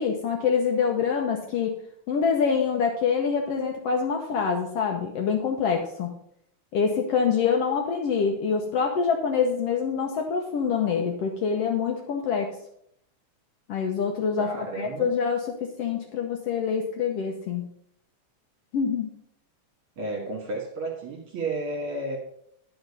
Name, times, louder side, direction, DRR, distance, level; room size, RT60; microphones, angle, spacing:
voice 1, 0.0-1.8 2.1-6.1 6.7-12.5 13.7-17.6 18.7-19.1, left 6 dB, 65° left, 2 dB, 1.7 m, -25 dB
voice 2, 14.4-15.2 20.0-22.2, right 2 dB, 55° right, 1 dB, 2.3 m, -32 dB
10.5 x 5.0 x 5.5 m, 0.71 s
omnidirectional pair, 3.4 m